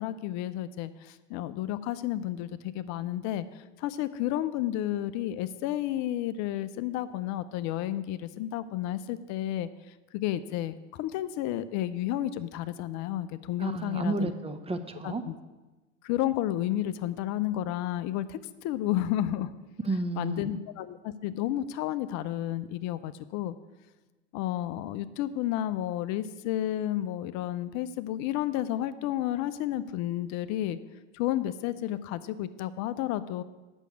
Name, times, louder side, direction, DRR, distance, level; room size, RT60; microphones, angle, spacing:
voice 1, 0.0-14.3 15.0-15.4 16.0-19.5 20.2-23.6 24.3-30.8 31.1-33.4, left 13 dB, 50° left, 13 dB, 0.6 m, -31 dB
voice 2, 13.6-15.2 19.8-20.6, right 3 dB, 15° right, 9 dB, 0.9 m, -31 dB
8.2 x 6.2 x 8.1 m, 1.2 s
hypercardioid pair, 75°, 35 cm